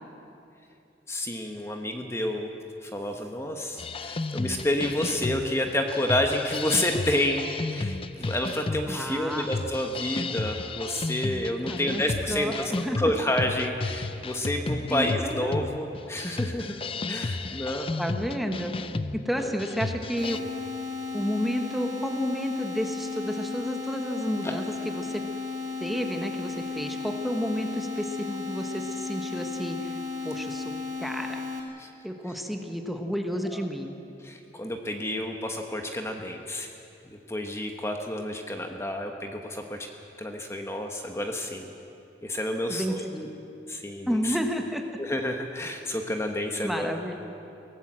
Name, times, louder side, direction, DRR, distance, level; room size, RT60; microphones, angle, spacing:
voice 1, 1.1-2.5 2.8-12.5 13.0-16.7 17.1-17.9 24.4-24.5 31.8-31.9 34.2-36.7 37.3-39.9 40.2-41.7 42.2-43.0 43.7-44.4 45.0-46.9, left 1 dB, 15° left, 3 dB, 1.3 m, -29 dB
sound 1, 3.8-20.4, left 3 dB, 30° left, 0.6 m, -33 dB
voice 2, 8.9-9.5 11.7-12.0 12.3-13.0 14.9-15.7 18.0-18.7 19.1-20.5 21.1-25.2 25.8-31.4 32.0-33.9 42.7-43.3 44.0-44.8 46.6-47.2, equal, ahead, 4 dB, 1.4 m, -31 dB
sound 2, 20.2-31.6, left 4 dB, 80° right, 3.3 m, -34 dB
24.0 x 17.5 x 7.6 m, 2.7 s
head